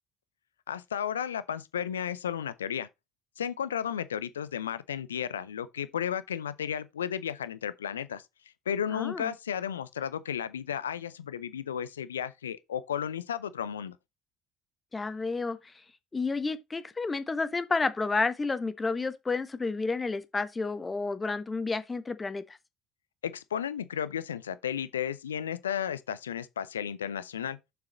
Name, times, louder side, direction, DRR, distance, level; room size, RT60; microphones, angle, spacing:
voice 1, 0.7-2.9 3.4-8.2 8.7-13.9 23.2-27.6, left 9 dB, 80° left, 0.4 m, -33 dB
voice 2, 8.9-9.3 14.9-15.6 16.1-22.6, left 3 dB, 25° left, 1.2 m, -31 dB
6.9 x 6.5 x 4.0 m
figure-of-eight pair, 55°, 0 cm